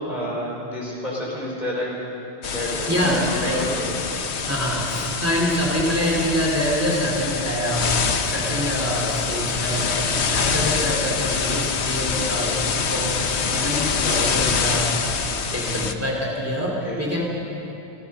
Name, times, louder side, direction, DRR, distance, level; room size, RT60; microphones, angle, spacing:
voice 1, 0.0-2.0 2.5-3.7 16.8-17.0, equal, 40° left, -4 dB, 5.4 m, -29 dB
sound 1, 2.4-15.9, left 6 dB, 80° left, 1.3 m, -25 dB
voice 2, 2.9-3.8 4.5-7.9 8.2-12.6 12.9-13.2 13.5-14.9 15.5-17.2, equal, 15° right, -2 dB, 2.9 m, -25 dB
27.5 x 16.0 x 6.7 m, 3.0 s
omnidirectional pair, 1.1 m